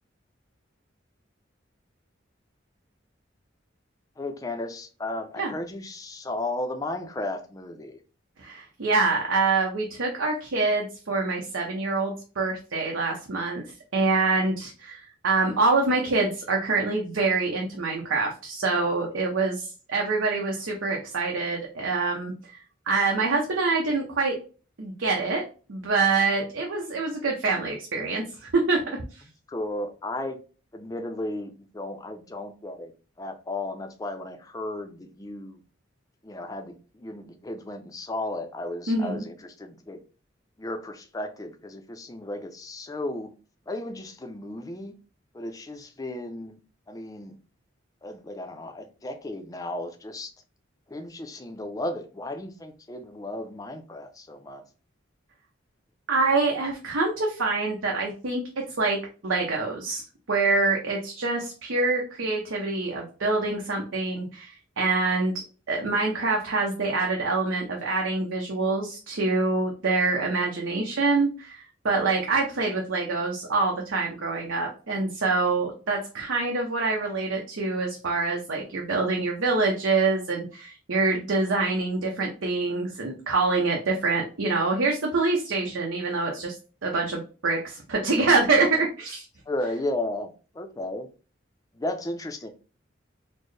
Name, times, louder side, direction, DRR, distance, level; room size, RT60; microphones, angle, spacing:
voice 1, 4.2-8.0 29.5-30.4 30.7-32.9 33.2-35.6 36.2-40.0 40.6-43.3 43.7-44.9 45.3-46.6 46.9-47.3 48.0-50.3 50.9-54.6 89.5-91.1 91.7-92.5, left 1 dB, 20° left, 0.4 m, -34 dB
voice 2, 8.4-13.6 13.9-24.3 24.8-25.4 25.7-28.8 29.1-29.2 38.9-39.2 56.1-58.4 58.8-59.0 59.2-65.3 65.7-86.5 86.8-89.2, right 3 dB, 90° right, 0.7 m, -25 dB
4.2 x 2.1 x 3.1 m
head